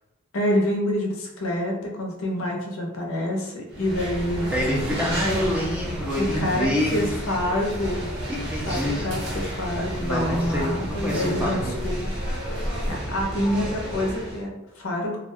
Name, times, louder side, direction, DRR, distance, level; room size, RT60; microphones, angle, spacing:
voice 1, 0.3-4.5 5.0-5.2 6.2-8.1 8.7-12.1 12.9-15.2, left 1 dB, 65° left, 0 dB, 0.5 m, -27 dB
sound 1, 3.7-14.4, equal, 60° right, 0.7 m, -31 dB
voice 2, 4.5-7.0 8.3-9.1 10.0-11.8, equal, 5° right, -4 dB, 0.4 m, -27 dB
2.4 x 2.1 x 2.6 m, 0.97 s
head